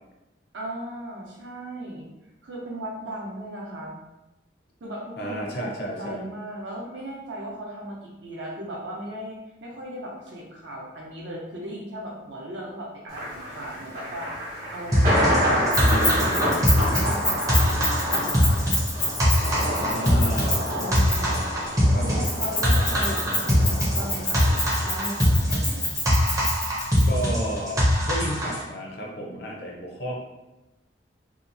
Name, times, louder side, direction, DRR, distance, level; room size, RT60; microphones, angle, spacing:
voice 1, 0.5-2.1 2.4-4.0 4.8-5.7 6.0-16.6 17.0-18.9 20.8-21.6 21.9-25.9, right 1 dB, 75° right, -2 dB, 0.6 m, -37 dB
voice 2, 5.2-6.2 19.6-20.7 21.9-22.2 27.1-30.1, right 1 dB, 60° left, -1 dB, 0.6 m, -32 dB
Thunder, 13.1-25.4, equal, 45° right, 0.9 m, -29 dB
sound 1, 14.9-28.6, equal, 15° right, 0.5 m, -22 dB
Keys jangling, 15.7-21.4 22.2-27.0, left 2 dB, 85° left, 1.1 m, -28 dB
2.7 x 2.0 x 2.6 m, 1.0 s
head